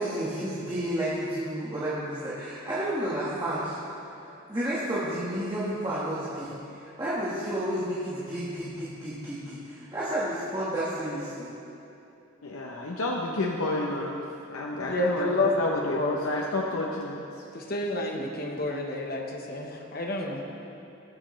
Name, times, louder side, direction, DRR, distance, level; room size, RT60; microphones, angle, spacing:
voice 1, 0.0-3.8 4.5-11.5, right 1 dB, 20° right, -10 dB, 1.4 m, -31 dB
voice 2, 12.4-14.2 14.5-17.2, left 2 dB, 90° left, -1 dB, 0.8 m, -30 dB
voice 3, 14.9-16.2 17.5-20.4, left 1 dB, 45° left, 1 dB, 1.1 m, -29 dB
19.5 x 6.7 x 3.2 m, 2.8 s
head